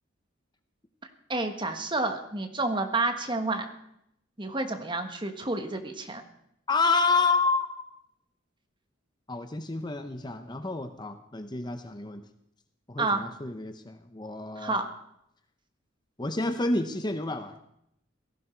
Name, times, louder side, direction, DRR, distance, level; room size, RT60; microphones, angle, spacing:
voice 1, 1.3-3.6 4.4-6.2 13.0-13.2 14.6-14.9, right 2 dB, 25° right, 6 dB, 1.4 m, -29 dB
voice 2, 6.7-7.8 9.3-12.2 12.9-14.8 16.2-17.5, left 3 dB, 20° left, 8 dB, 0.8 m, -29 dB
17.5 x 15.5 x 4.5 m, 0.76 s
head